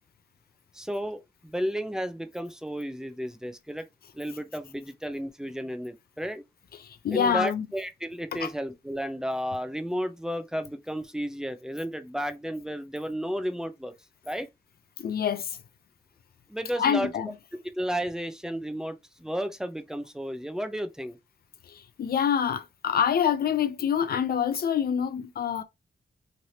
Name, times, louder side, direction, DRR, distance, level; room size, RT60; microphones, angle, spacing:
voice 1, 0.7-3.9 4.1-6.4 7.1-13.9 14.2-14.5 16.5-17.1 17.7-21.2, equal, 5° right, 0.5 m, -33 dB
voice 2, 6.8-7.7 8.4-8.5 15.0-15.6 16.8-17.3 21.7-25.6, left 8 dB, 65° left, 0.4 m, -26 dB
3.2 x 2.7 x 2.7 m
wide cardioid pair, 110°, 17 cm